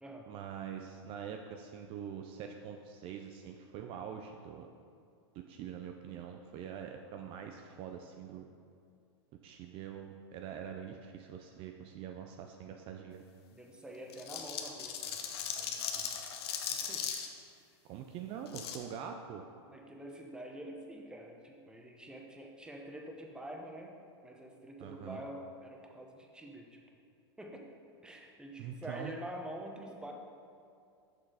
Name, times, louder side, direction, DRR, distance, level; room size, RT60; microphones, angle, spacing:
voice 1, 0.3-4.7 5.5-8.5 9.4-13.2 17.9-19.4 24.8-25.2 28.6-29.1, right 8 dB, 40° right, 4 dB, 0.5 m, -44 dB
voice 2, 13.5-15.2 15.6-16.2 16.7-17.0 19.7-23.9 24.2-26.8 27.4-27.7 28.0-30.1, right 1 dB, 5° right, 1 dB, 0.9 m, -47 dB
sound 1, 14.1-17.3 18.5-18.8, left 8 dB, 65° left, 0.9 m, -38 dB
6.7 x 5.7 x 4.9 m, 2.4 s
hypercardioid pair, 105°, 14 cm